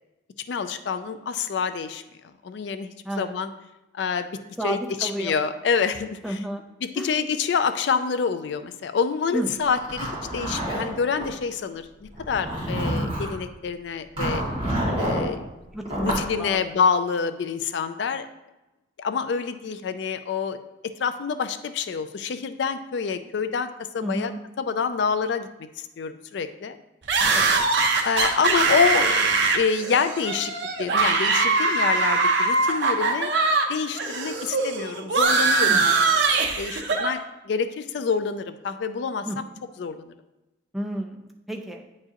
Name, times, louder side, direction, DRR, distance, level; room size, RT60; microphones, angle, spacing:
voice 1, 0.5-2.0 2.4-3.5 3.9-4.4 4.6-6.4 6.8-14.4 15.0-15.5 16.0-18.3 19.0-20.6 20.8-23.7 23.9-24.3 24.6-25.5 25.8-26.8 28.0-30.5 30.8-33.3 33.7-39.4 39.8-40.1, left 5 dB, 60° left, 10 dB, 0.3 m, -27 dB
voice 2, 3.0-3.4 4.6-5.4 6.2-6.6 7.0-7.2 9.3-9.5 15.7-16.7 24.0-24.4 27.3-27.6 35.7-35.8 39.2-39.4 40.7-41.2 41.5-41.9, right 1 dB, ahead, 1 dB, 0.4 m, -31 dB
Zipper (clothing), 9.8-11.3 12.1-13.4 14.2-15.3 15.9-16.3, right 1 dB, 25° right, 1.9 m, -28 dB
sound 1, 27.1-33.7 33.9-37.1, right 3 dB, 60° right, 0.7 m, -22 dB
8.6 x 4.7 x 2.9 m, 1.0 s
head